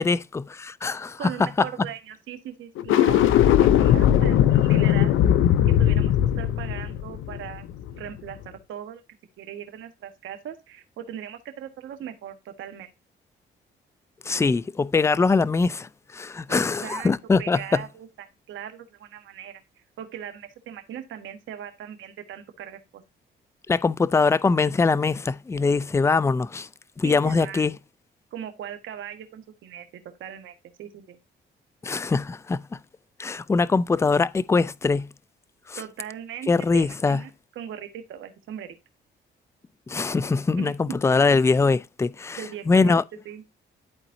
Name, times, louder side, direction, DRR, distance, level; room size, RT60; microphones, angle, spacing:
voice 1, 0.0-1.5 14.2-17.8 23.7-26.7 27.0-27.7 31.8-32.6 33.2-35.1 35.7-35.8 36.5-37.2 39.9-42.4 42.7-43.0, left 4 dB, 15° left, 0.4 m, -22 dB
voice 2, 1.2-5.2 5.6-9.0 9.4-12.9 16.5-17.1 17.4-18.1 18.5-23.0 27.0-27.6 28.3-31.2 35.8-38.8 40.6-41.0 42.4-43.0 43.2-43.4, right 10 dB, 75° right, 1.4 m, -39 dB
sound 1, 2.8-8.1, left 11 dB, 90° left, 0.6 m, -19 dB
12.0 x 4.1 x 2.6 m
cardioid pair, 90°, 20 cm